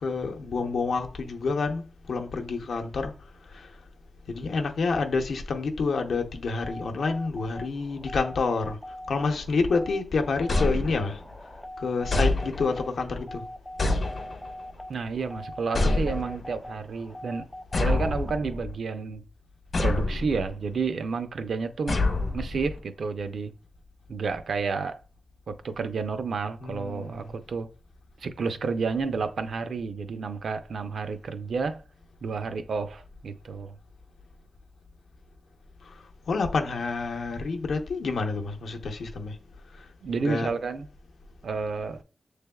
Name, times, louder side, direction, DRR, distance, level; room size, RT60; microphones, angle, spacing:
voice 1, 0.0-3.1 3.5-3.7 4.3-8.8 9.1-11.2 11.8-13.4 26.6-27.3 35.9-36.0 36.3-39.4 40.2-40.5, left 4 dB, 80° left, 0.7 m, -28 dB
sound 1, 6.6-18.6, left 1 dB, 10° left, 0.4 m, -42 dB
sound 2, 10.5-11.4 12.1-12.9 13.8-14.7 15.7-16.6 17.7-18.8 19.7-20.5 21.9-22.8, left 2 dB, 50° left, 0.8 m, -27 dB
voice 2, 14.9-17.5 17.7-19.2 19.8-22.0 22.3-23.5 24.1-25.0 25.5-27.7 28.2-31.8 32.2-33.7 40.0-40.9 41.4-42.0, right 4 dB, 70° right, 0.4 m, -30 dB
6.7 x 3.3 x 2.3 m
wide cardioid pair, 125°, 0 cm